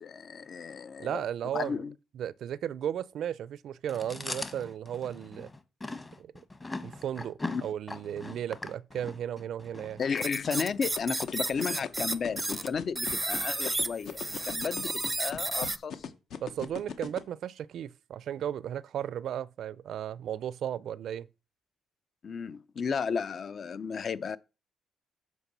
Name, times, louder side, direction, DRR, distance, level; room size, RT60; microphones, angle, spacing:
voice 1, 0.0-1.2 1.5-1.9 7.5-7.6 10.0-16.1 22.2-24.4, left 6 dB, 50° left, 0.6 m, -33 dB
voice 2, 1.0-1.8 2.1-5.5 6.2-6.3 6.8-10.0 16.4-21.3, right 10 dB, 70° right, 0.5 m, -35 dB
Chewing mastication, 3.9-10.9, left 2 dB, 20° left, 1.1 m, -40 dB
sound 1, 10.2-12.7 12.9-15.8, right 2 dB, 15° right, 0.5 m, -32 dB
sound 2, 11.0-17.2, left 7 dB, 70° left, 1.1 m, -38 dB
8.3 x 4.6 x 6.8 m
cardioid pair, 90°, 0 cm